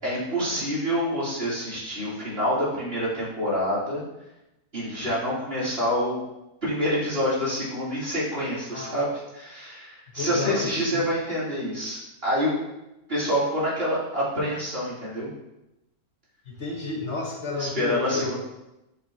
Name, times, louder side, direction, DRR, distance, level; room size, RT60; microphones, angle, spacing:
voice 1, 0.0-4.0 4.7-6.2 6.6-12.5 13.1-15.3 17.6-18.3, equal, 40° right, -9 dB, 3.4 m, -27 dB
voice 2, 8.7-9.0 10.2-11.0 16.5-18.3, left 3 dB, 50° left, -2 dB, 1.4 m, -31 dB
7.9 x 7.1 x 2.9 m, 0.93 s
omnidirectional pair, 1.6 m